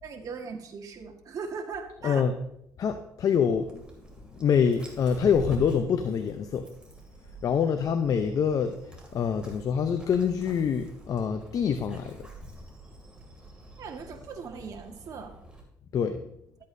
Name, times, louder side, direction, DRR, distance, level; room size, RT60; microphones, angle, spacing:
voice 1, 0.0-2.2 13.8-15.3, right 5 dB, 55° right, 2 dB, 1.6 m, -39 dB
voice 2, 2.8-3.8 4.3-6.7 7.4-12.3 15.9-16.3, left 7 dB, 55° left, 8 dB, 0.6 m, -26 dB
Dog, 3.5-15.6, right 2 dB, 15° right, 2.4 m, -47 dB
12.5 x 8.4 x 2.7 m, 0.78 s
cardioid pair, 85°, 7 cm